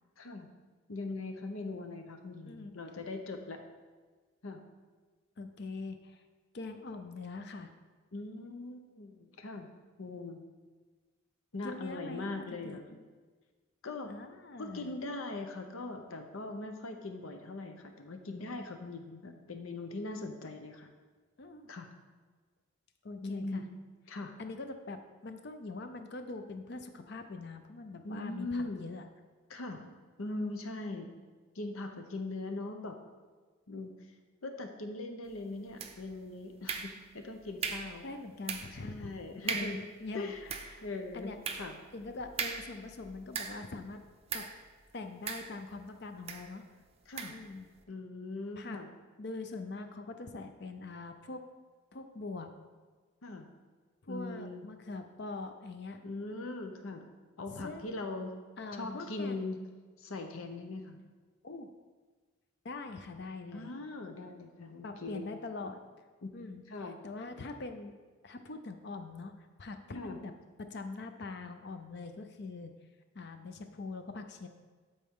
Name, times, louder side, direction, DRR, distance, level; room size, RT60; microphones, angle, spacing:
voice 1, 0.2-0.5 0.9-3.6 4.4-4.6 8.1-9.7 10.0-10.4 11.5-12.8 13.8-14.1 14.6-20.9 21.7-21.9 23.2-23.8 24.1-24.3 28.0-28.9 29.5-29.9 30.2-31.1 31.5-32.9 33.7-33.9 34.4-38.0 38.8-39.9 40.1-40.4 40.8-41.8 47.1-47.4 47.9-48.9 53.2-53.5 54.1-54.7 56.0-57.1 57.4-58.3 58.7-59.6 60.0-61.0 63.5-65.4 66.2-67.0 69.9-70.2, left 2 dB, 85° left, 5 dB, 0.8 m, -40 dB
voice 2, 5.4-6.2 6.5-7.7 11.6-12.3 12.6-12.8 14.1-15.0 21.4-21.7 23.0-23.6 24.4-29.0 38.0-39.1 39.5-40.8 41.1-41.7 41.9-44.0 44.3-44.5 44.9-46.6 47.3-47.7 48.6-48.8 49.2-51.4 51.9-52.5 54.0-56.0 57.5-57.9 58.6-59.4 61.4-61.7 62.6-63.7 64.8-65.8 66.3-67.9 68.2-70.3 70.6-72.7 73.1-74.5, left 3 dB, 55° left, 7 dB, 0.5 m, -43 dB
sound 1, 35.8-36.2 36.7-37.2 37.6-38.0 38.5-38.8 39.1-39.2 39.5-39.9 40.3-43.8 44.3-44.6 45.3-45.9 46.3-46.5 47.2-47.5, right 6 dB, 30° right, 0.4 m, -38 dB
12.5 x 4.2 x 3.7 m, 1.4 s
head